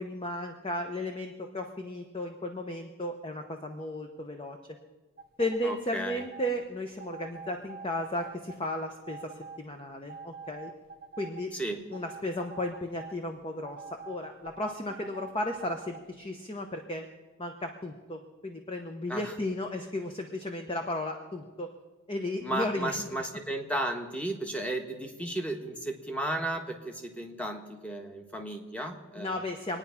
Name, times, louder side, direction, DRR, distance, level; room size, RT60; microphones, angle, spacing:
voice 1, 0.0-4.6 5.4-10.7 11.2-11.5 11.9-17.0 17.4-21.7 22.1-23.1 29.1-29.8, left 1 dB, 25° left, 5 dB, 0.9 m, -34 dB
sound 1, 5.2-5.7 6.2-6.5 7.0-9.6 10.1-11.4 11.9-13.2 13.6-16.0, right 5 dB, 40° right, 0.7 m, -45 dB
voice 2, 5.6-6.2 11.5-11.8 19.1-19.3 22.4-29.4, right 1 dB, 5° left, 4 dB, 1.3 m, -34 dB
24.5 x 9.6 x 5.7 m, 1.3 s
head